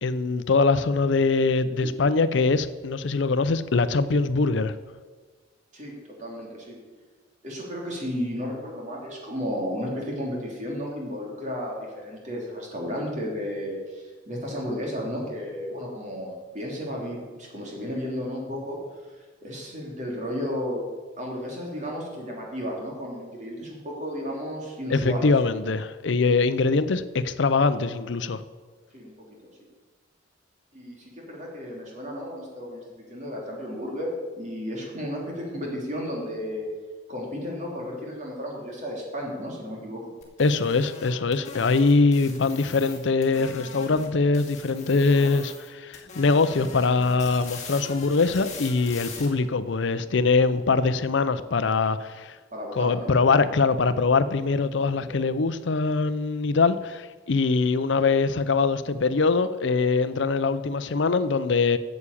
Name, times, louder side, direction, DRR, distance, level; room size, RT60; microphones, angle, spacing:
voice 1, 0.0-4.7 24.9-28.4 40.4-52.4 52.8-61.8, left 4 dB, 65° left, 0.5 m, -23 dB
voice 2, 5.7-6.8 7.4-20.8 21.2-25.3 28.9-29.3 30.7-32.8 33.1-36.6 37.1-40.1 45.1-45.3 52.5-53.1 54.7-55.3, equal, 40° right, 3.1 m, -33 dB
sound 1, 40.2-44.1 44.3-45.7 45.9-49.3, left 4 dB, 35° left, 2.2 m, -41 dB
9.5 x 7.1 x 8.5 m
head